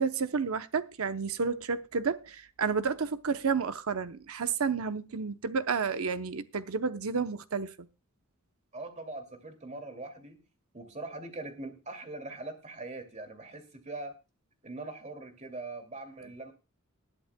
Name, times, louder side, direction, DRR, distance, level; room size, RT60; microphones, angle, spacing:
voice 1, 0.0-7.7, right 5 dB, 75° right, 0.8 m, -31 dB
voice 2, 8.7-10.4 10.7-14.1 14.6-16.5, right 2 dB, 35° right, 2.4 m, -42 dB
20.0 x 11.0 x 2.2 m
head